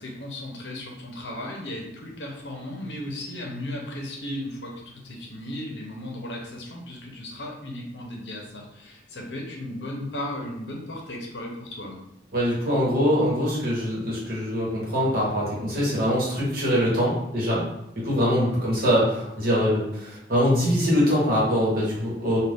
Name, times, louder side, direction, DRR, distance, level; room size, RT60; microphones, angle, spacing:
voice 1, 0.0-12.0 18.4-18.5, left 1 dB, 70° left, -1 dB, 0.7 m, -35 dB
voice 2, 12.3-17.6 18.0-22.4, equal, 55° right, -6 dB, 1.1 m, -23 dB
2.5 x 2.3 x 3.4 m, 0.84 s
head